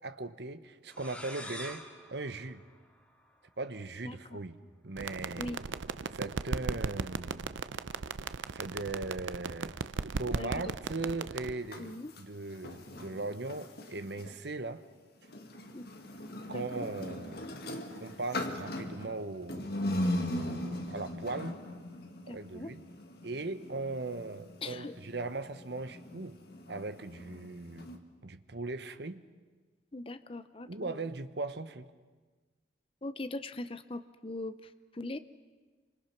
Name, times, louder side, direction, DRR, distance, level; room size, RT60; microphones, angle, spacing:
voice 1, 0.0-2.6 3.6-4.6 4.8-5.6 6.1-7.5 8.5-9.7 10.2-14.8 16.5-17.4 18.0-19.7 20.4-21.6 22.3-22.8 23.2-26.4 26.7-27.9 28.2-29.2 30.7-31.9, right 3 dB, 60° right, 1.1 m, -39 dB
sound 1, 0.9-3.5, left 1 dB, 5° left, 2.2 m, -47 dB
voice 2, 4.0-4.4 5.4-5.6 10.4-10.7 11.8-12.1 15.7-15.9 16.5-16.8 22.3-22.7 24.6-24.9 29.9-31.1 33.0-35.2, left 2 dB, 30° left, 0.6 m, -41 dB
sound 2, 5.0-11.5, right 4 dB, 80° right, 0.6 m, -37 dB
sound 3, 11.6-14.4 15.2-28.0, left 1 dB, 55° left, 2.0 m, -39 dB
27.5 x 25.5 x 6.0 m
head